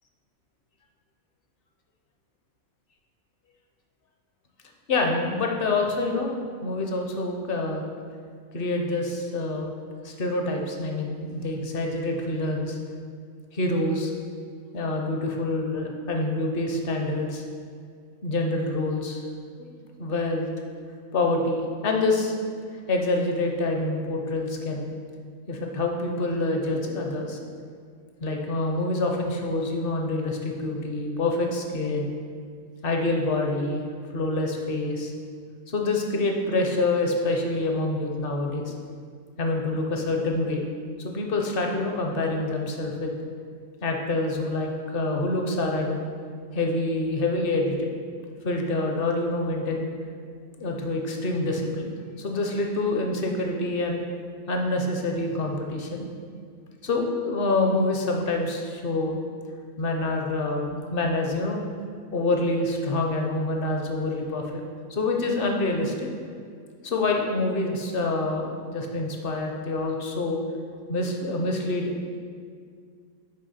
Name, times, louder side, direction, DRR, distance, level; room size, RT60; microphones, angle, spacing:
voice 1, 4.9-6.3 6.6-7.8 8.5-9.7 10.0-12.8 13.5-14.1 14.7-17.4 18.2-19.2 19.6-20.5 21.1-22.4 22.9-24.9 25.5-27.4 28.2-32.1 32.8-33.8 34.1-35.1 35.7-38.7 39.4-40.7 41.0-43.1 43.8-46.1 46.5-47.9 48.4-49.9 50.5-54.0 54.5-56.1 56.8-59.2 59.8-61.6 62.1-64.6 64.9-66.1 66.8-70.4 70.9-71.9, left 2 dB, 50° left, 2 dB, 0.8 m, -26 dB
6.5 x 5.0 x 4.2 m, 2.1 s
omnidirectional pair, 1.5 m